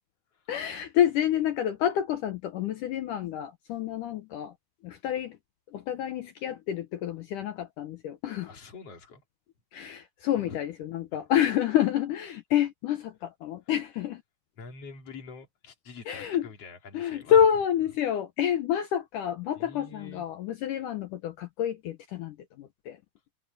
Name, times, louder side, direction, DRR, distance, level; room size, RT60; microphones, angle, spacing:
voice 1, 0.5-4.5 4.8-5.4 5.7-8.5 9.7-14.2 16.1-16.5 16.9-23.0, left 10 dB, 70° left, 2.1 m, -28 dB
voice 2, 8.5-9.2 10.3-10.6 11.1-11.2 14.6-17.5 19.6-20.2, left 4 dB, 40° left, 3.4 m, -45 dB
omnidirectional pair, 4.5 m